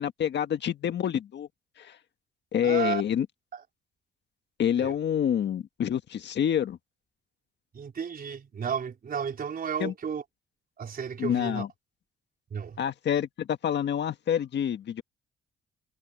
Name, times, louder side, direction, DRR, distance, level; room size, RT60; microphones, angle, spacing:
voice 1, 0.0-1.5 1.8-1.9 2.5-3.2 4.6-6.8 9.8-9.9 11.2-11.7 12.8-15.0, left 9 dB, 60° left, 1.6 m, -27 dB
voice 2, 2.6-3.0 3.5-3.6 4.8-4.9 7.7-10.2 10.8-11.6 12.5-12.8, right 7 dB, 50° right, 4.3 m, -33 dB
cardioid pair, 90°, 20 cm